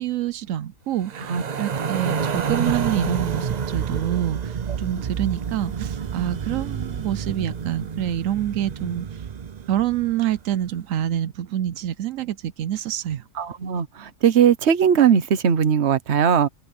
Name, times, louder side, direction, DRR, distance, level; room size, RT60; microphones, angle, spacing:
voice 1, 0.0-9.2 9.7-13.3, right 11 dB, 85° right, 1.0 m, -27 dB
sound 1, 1.0-10.3, right 6 dB, 45° right, 0.6 m, -29 dB
voice 2, 13.4-16.5, right 8 dB, 60° right, 1.2 m, -19 dB
omnidirectional pair, 1.3 m